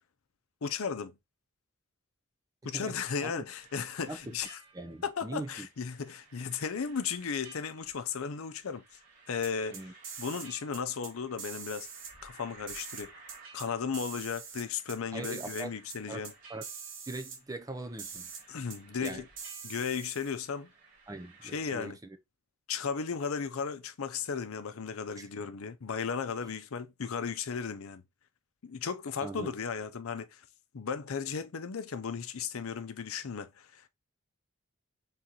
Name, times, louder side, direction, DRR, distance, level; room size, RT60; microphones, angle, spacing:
voice 1, 0.6-1.2 2.6-4.6 5.0-8.8 9.3-9.8 10.2-11.9 12.2-13.1 13.5-16.3 18.5-19.3 19.6-20.7 21.4-22.0 22.7-28.0 28.6-30.4 30.7-33.9, left 6 dB, 80° left, 0.6 m, -35 dB
voice 2, 2.6-3.4 4.1-4.2 4.7-5.7 9.7-9.9 15.1-15.7 16.1-16.2 16.5-16.6 17.1-18.3 19.0-19.2 21.1-22.0 25.2-25.3 29.2-29.5, right 2 dB, 15° right, 0.4 m, -41 dB
sound 1, 3.5-21.7, right 4 dB, 40° right, 2.1 m, -57 dB
sound 2, 9.4-10.5 10.7-11.1 11.4-12.1 12.7-13.7 13.9-15.0 15.2-15.6 15.9-16.0 16.2-16.3 16.6-17.4 18.0-18.4 18.7-18.8 19.0-20.4, right 6 dB, 60° right, 1.1 m, -43 dB
3.7 x 2.9 x 3.8 m
head